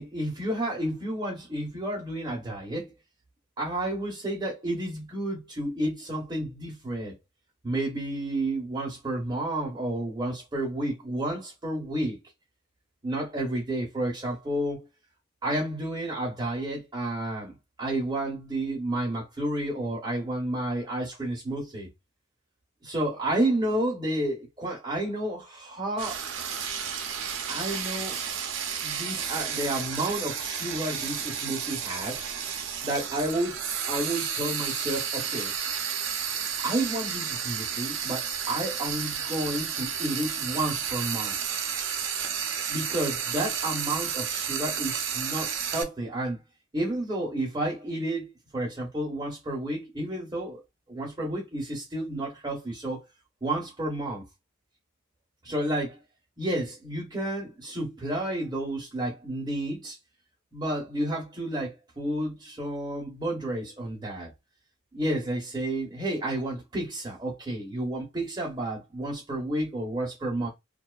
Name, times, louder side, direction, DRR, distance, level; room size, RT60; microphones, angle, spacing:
voice 1, 0.0-2.9 3.6-7.2 7.6-12.2 13.0-14.9 15.4-21.9 22.8-26.2 27.5-28.2 28.8-32.3 32.8-35.5 36.6-41.4 42.7-46.4 46.7-50.6 50.9-53.0 53.4-54.2 55.4-56.0 56.4-60.0 60.5-64.3 64.9-70.5, right 1 dB, 20° right, 0.7 m, -31 dB
Frying (food), 26.0-45.8, right 7 dB, 65° right, 0.5 m, -32 dB
2.6 x 2.2 x 2.3 m
head